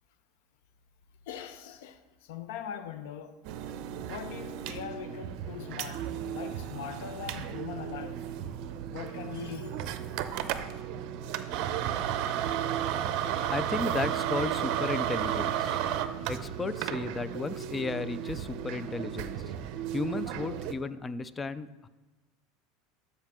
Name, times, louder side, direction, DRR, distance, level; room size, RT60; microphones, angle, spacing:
voice 1, 1.3-3.4 4.1-8.2 8.9-9.8, left 9 dB, 75° left, 0.8 m, -41 dB
sound 1, 3.4-20.7, right 10 dB, 60° right, 0.6 m, -33 dB
voice 2, 13.5-15.8 16.3-19.4 19.9-21.9, left 3 dB, 20° left, 0.4 m, -34 dB
12.5 x 5.5 x 3.7 m
supercardioid pair, 120°, 0 cm